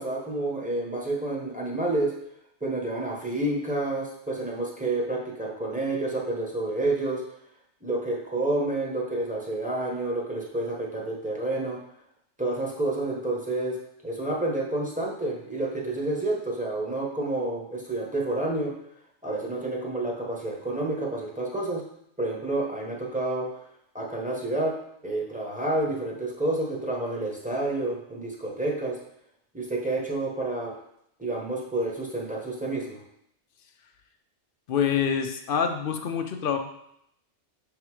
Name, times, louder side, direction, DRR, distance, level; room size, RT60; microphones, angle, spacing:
voice 1, 0.0-2.1 2.6-7.2 7.8-11.8 12.4-13.8 14.0-18.7 19.2-21.8 22.2-23.6 23.9-24.7 25.0-29.0 29.5-30.7 31.2-33.0, right 2 dB, 5° right, -3 dB, 1.2 m, -29 dB
voice 2, 34.7-36.6, left 7 dB, 55° left, 6 dB, 0.8 m, -26 dB
6.7 x 3.8 x 4.8 m, 0.75 s
omnidirectional pair, 1.2 m